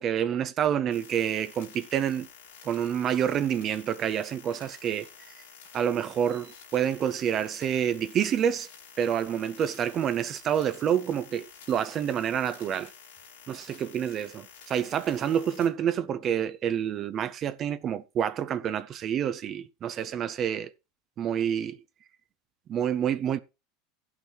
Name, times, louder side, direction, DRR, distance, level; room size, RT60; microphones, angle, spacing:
voice 1, 0.0-2.3 2.6-5.1 5.7-8.7 9.0-12.9 13.5-20.7 21.2-21.8 22.7-23.4, right 9 dB, 40° right, 0.6 m, -28 dB
sound 1, 0.9-15.7, left 6 dB, 85° left, 2.7 m, -51 dB
16.0 x 5.9 x 2.9 m
supercardioid pair, 115°, 0 cm